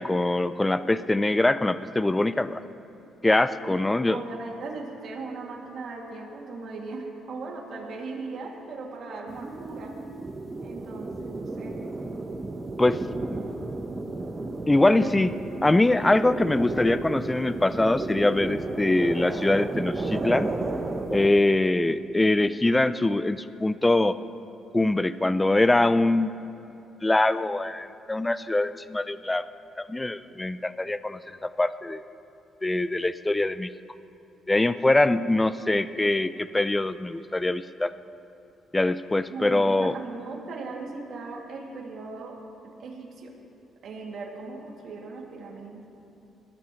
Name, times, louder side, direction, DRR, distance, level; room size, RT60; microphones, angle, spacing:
voice 1, 0.0-2.6 3.2-4.2 12.8-13.0 14.7-15.3 15.6-20.5 21.1-24.2 24.7-26.3 27.0-29.4 29.8-32.0 32.6-33.7 34.5-37.9 38.7-39.9, left 2 dB, 15° left, 13 dB, 0.4 m, -23 dB
voice 2, 3.7-9.9 10.6-11.8 14.9-15.1 39.3-42.4 42.8-43.3 43.8-45.8, right 3 dB, 65° right, -1 dB, 2.5 m, -38 dB
sound 1, 9.3-21.3, right 2 dB, 30° right, 1.1 m, -33 dB
21.0 x 13.0 x 3.1 m, 2.8 s
cardioid pair, 90°, 0 cm